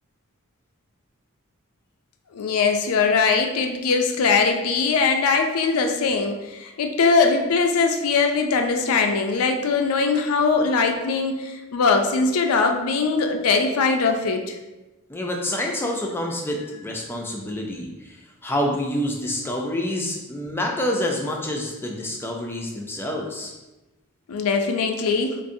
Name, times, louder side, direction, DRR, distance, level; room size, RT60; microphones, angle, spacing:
voice 1, 2.3-14.6 24.3-25.4, left 4 dB, 80° left, 4 dB, 0.4 m, -21 dB
voice 2, 15.1-23.5, left 1 dB, 10° left, 0 dB, 0.4 m, -27 dB
4.7 x 2.5 x 2.6 m, 1.1 s
head